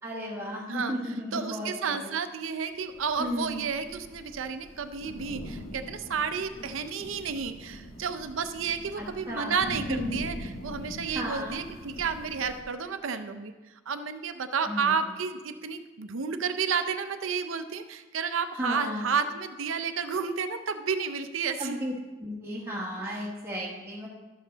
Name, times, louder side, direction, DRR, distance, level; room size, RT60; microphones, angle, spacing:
voice 1, 0.0-2.1 3.2-3.6 9.0-9.6 9.9-10.1 11.1-11.6 14.6-14.9 18.6-19.1 21.6-21.9 22.2-24.1, equal, 10° right, -5 dB, 1.2 m, -34 dB
voice 2, 0.7-13.5 13.9-21.8 23.1-23.2, right 6 dB, 70° right, 9 dB, 0.6 m, -31 dB
Thunder / Rain, 2.9-12.6, equal, 85° left, 1.5 m, -43 dB
12.5 x 7.3 x 4.0 m, 1.2 s
head